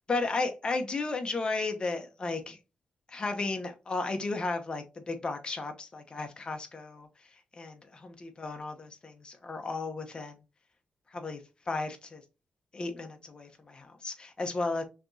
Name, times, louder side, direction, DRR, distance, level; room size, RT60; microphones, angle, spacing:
voice 1, 0.1-2.6 3.1-7.1 7.5-10.4 11.1-12.2 12.7-14.8, left 3 dB, 30° left, 0.9 m, -34 dB
5.9 x 3.0 x 2.7 m
wide cardioid pair, 135°, 3 cm